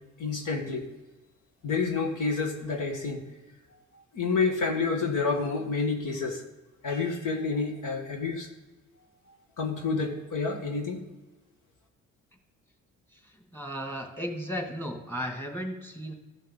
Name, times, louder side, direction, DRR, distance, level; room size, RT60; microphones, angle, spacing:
voice 1, 0.2-0.9 1.6-3.2 3.7-6.4 6.8-8.5 9.6-11.0, left 4 dB, 65° left, 3 dB, 1.6 m, -29 dB
voice 2, 13.1-16.1, equal, 5° left, 2 dB, 2.6 m, -35 dB
14.5 x 5.4 x 4.0 m, 1.1 s
supercardioid pair, 55°, 33 cm